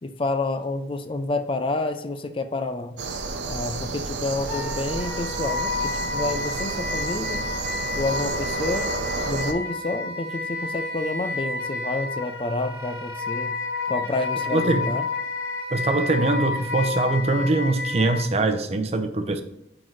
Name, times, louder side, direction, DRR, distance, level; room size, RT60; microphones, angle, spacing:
voice 1, 0.0-3.0 3.5-7.4 7.9-8.9 9.3-13.6 13.9-15.1, left 2 dB, 30° left, 8 dB, 0.4 m, -29 dB
sound 1, 3.0-9.5, right 3 dB, 90° right, 0.8 m, -31 dB
Wind instrument woodwind instrument, 4.5-18.3, left 3 dB, 60° left, 1.3 m, -30 dB
voice 2, 14.5-14.8 15.7-19.4, right 2 dB, 35° right, 7 dB, 0.6 m, -23 dB
8.9 x 3.9 x 3.2 m, 0.86 s
head